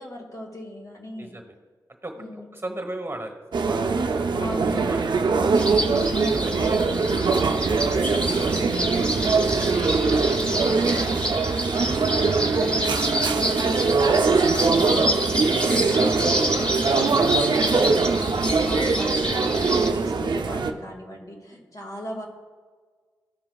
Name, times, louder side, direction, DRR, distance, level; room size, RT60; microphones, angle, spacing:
voice 1, 0.0-1.4 2.2-2.5 4.4-5.0 10.1-11.2 12.8-22.2, left 1 dB, 50° left, 0 dB, 1.9 m, -38 dB
voice 2, 1.2-1.5 2.0-5.5 5.9-9.7 10.1-10.2, right 1 dB, 30° right, 5 dB, 1.2 m, -39 dB
sound 1, 3.5-20.7, right 4 dB, 70° right, 0.6 m, -22 dB
sound 2, 5.5-19.9, equal, 15° left, 1.5 m, -29 dB
14.5 x 5.8 x 2.3 m, 1.5 s
cardioid pair, 65°, 8 cm